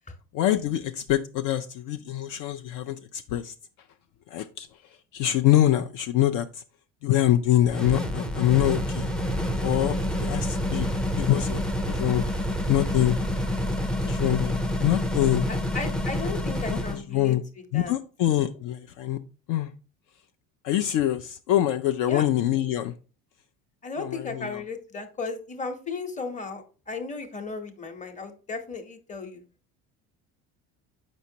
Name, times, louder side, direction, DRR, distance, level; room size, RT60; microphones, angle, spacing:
voice 1, 0.3-3.5 4.3-6.6 7.0-9.1 9.6-10.9 11.2-12.3 12.7-13.2 14.0-15.5 16.7-17.4 17.7-19.2 19.5-19.7 20.6-22.9 24.0-24.6, left 13 dB, 65° left, 8 dB, 0.4 m, -25 dB
sound 1, 7.7-17.0, left 1 dB, ahead, 0.4 m, -28 dB
voice 2, 15.5-17.4 17.7-17.9 22.1-22.3 23.8-29.4, left 4 dB, 20° left, 7 dB, 0.9 m, -35 dB
6.9 x 5.2 x 2.8 m, 0.37 s
cardioid pair, 130°, 35 cm